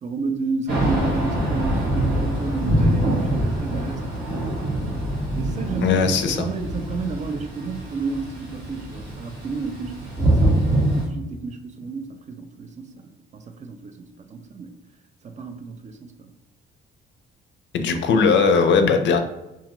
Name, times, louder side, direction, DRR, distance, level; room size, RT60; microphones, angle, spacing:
voice 1, 0.0-5.0 5.3-14.8 15.2-16.3, right 4 dB, 35° right, 7 dB, 0.4 m, -32 dB
Thunder / Rain, 0.7-11.0, right 1 dB, 85° right, 1.1 m, -24 dB
voice 2, 5.8-6.5 17.7-19.2, left 5 dB, 65° left, 7 dB, 0.4 m, -18 dB
2.5 x 2.4 x 2.9 m, 0.97 s
cardioid pair, 90°, 20 cm